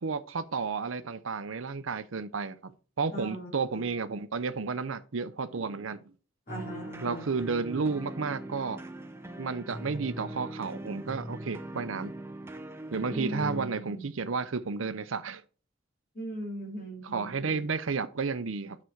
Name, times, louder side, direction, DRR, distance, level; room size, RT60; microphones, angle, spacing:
voice 1, 0.0-2.7 3.0-6.0 7.0-8.8 9.4-12.1 12.9-15.4 17.0-18.8, right 4 dB, 70° right, 0.7 m, -32 dB
voice 2, 3.1-3.9 6.5-7.2 13.1-14.0 16.1-17.6, right 1 dB, 45° left, 2.9 m, -39 dB
sound 1, 6.5-13.7, right 1 dB, 10° right, 0.8 m, -41 dB
7.0 x 6.1 x 4.5 m
head